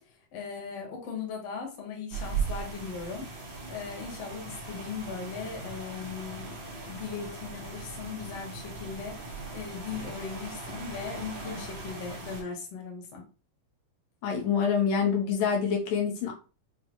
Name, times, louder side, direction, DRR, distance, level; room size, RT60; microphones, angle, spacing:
voice 1, 0.1-6.5 6.9-13.2, left 5 dB, 65° left, 0 dB, 1.9 m, -39 dB
sound 1, 2.1-12.4, right 4 dB, 70° right, 0.9 m, -39 dB
voice 2, 14.2-16.3, left 6 dB, 85° left, 1 dB, 2.4 m, -26 dB
6.1 x 2.1 x 3.0 m, 0.34 s
omnidirectional pair, 3.7 m